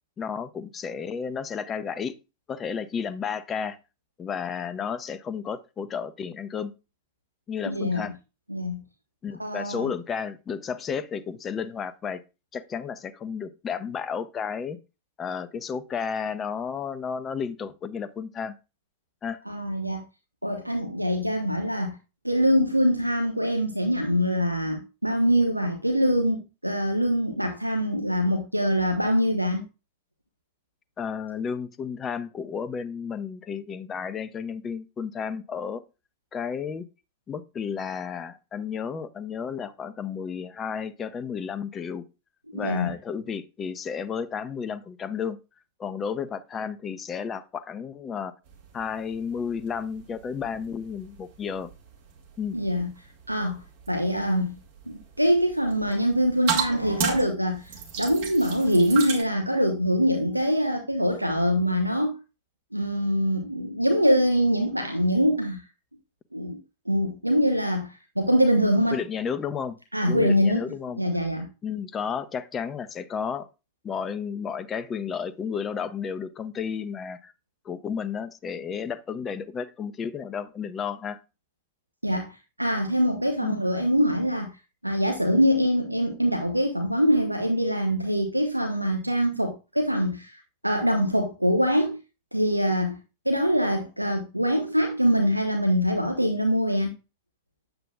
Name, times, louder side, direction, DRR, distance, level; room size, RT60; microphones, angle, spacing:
voice 1, 0.2-2.2 2.5-3.8 4.2-6.7 7.5-8.1 9.2-12.2 12.5-14.8 15.2-18.6 19.2-19.4 31.0-35.8 36.3-36.8 37.3-42.0 42.5-45.4 45.8-48.3 48.7-51.7 52.4-52.6 68.9-69.8 70.0-71.0 71.6-73.5 73.8-77.3 77.6-81.2 83.4-83.5, left 6 dB, 25° left, 0.8 m, -32 dB
voice 2, 7.6-8.1 8.5-8.8 9.4-9.9 19.5-20.0 20.4-22.0 22.2-29.6 42.5-42.9 52.5-52.9 53.3-53.6 53.9-54.6 54.9-62.2 62.7-65.6 66.3-66.6 66.9-69.0 69.9-70.6 71.0-71.5 82.0-82.3 82.6-84.5 84.8-92.0 92.3-93.0 93.2-96.9, equal, 90° right, 1.0 m, -24 dB
sound 1, 48.5-59.2, right 6 dB, 55° right, 2.5 m, -36 dB
9.3 x 7.8 x 2.3 m
figure-of-eight pair, 90°, 0 cm